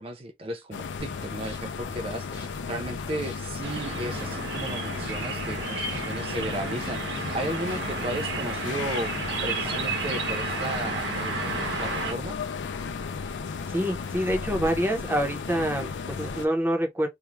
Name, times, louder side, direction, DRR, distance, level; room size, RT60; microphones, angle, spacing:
voice 1, 0.0-7.0 7.3-9.1 9.4-12.4, right 1 dB, 30° right, 0.4 m, -35 dB
sound 1, 0.7-16.5, left 5 dB, 90° left, 0.4 m, -34 dB
sound 2, 1.0-8.0, left 1 dB, 25° left, 1.0 m, -47 dB
sound 3, 3.6-12.1, right 3 dB, 70° right, 1.0 m, -32 dB
voice 2, 13.7-17.1, equal, 10° right, 0.8 m, -26 dB
2.5 x 2.3 x 3.0 m
head